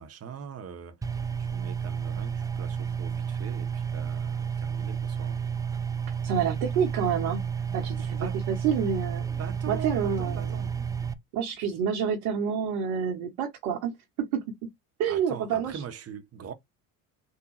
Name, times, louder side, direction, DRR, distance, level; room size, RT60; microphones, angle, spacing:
voice 1, 0.0-5.4 8.2-8.4 9.4-10.8 15.1-16.5, right 7 dB, 35° right, 0.9 m, -42 dB
sound 1, 1.0-11.1, right 7 dB, 10° right, 0.3 m, -31 dB
voice 2, 6.2-7.5 7.7-9.3 9.7-10.7 11.3-14.7 15.0-15.8, right 7 dB, 70° right, 1.0 m, -28 dB
3.6 x 2.2 x 3.1 m
hypercardioid pair, 65°, 44 cm